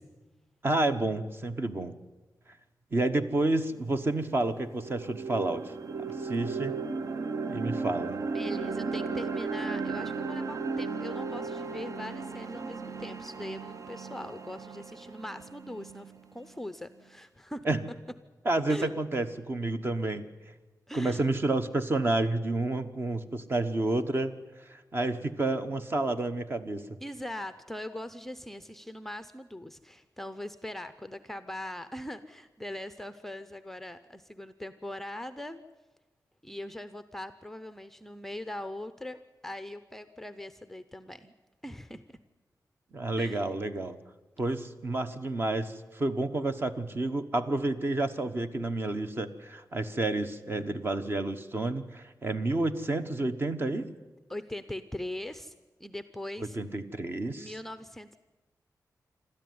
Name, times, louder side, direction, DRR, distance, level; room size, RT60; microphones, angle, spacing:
voice 1, 0.6-1.9 2.9-5.7 6.2-6.7 7.5-8.2 17.6-17.8 18.4-20.3 20.9-24.3 24.7-27.0 42.9-44.0 44.4-53.9 56.5-57.5, right 2 dB, 35° right, 9 dB, 1.1 m, -30 dB
sound 1, 3.8-3.9 4.3-16.4, right 4 dB, 55° right, 0.7 m, -35 dB
voice 2, 8.3-17.6 18.7-18.9 20.9-21.2 27.0-35.6 36.4-41.3 41.6-42.0 43.2-43.5 54.3-56.6 57.3-58.2, left 1 dB, 5° left, 11 dB, 0.6 m, -41 dB
27.0 x 13.0 x 9.5 m, 1.2 s
wide cardioid pair, 165°, 7 cm